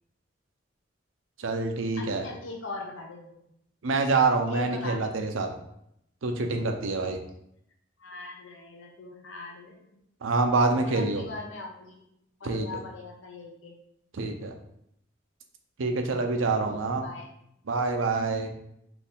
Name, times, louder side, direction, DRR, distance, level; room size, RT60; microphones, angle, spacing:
voice 1, 1.4-2.2 3.8-5.5 6.2-7.2 10.2-11.3 12.4-12.7 14.1-14.5 15.8-17.0 17.7-18.5, right 3 dB, 90° right, 4 dB, 0.6 m, -26 dB
voice 2, 1.9-3.4 4.5-5.2 8.0-10.0 10.9-12.0 12.4-13.8 16.4-17.3, left 3 dB, 80° left, 1 dB, 0.7 m, -41 dB
4.4 x 2.6 x 3.6 m, 0.76 s
head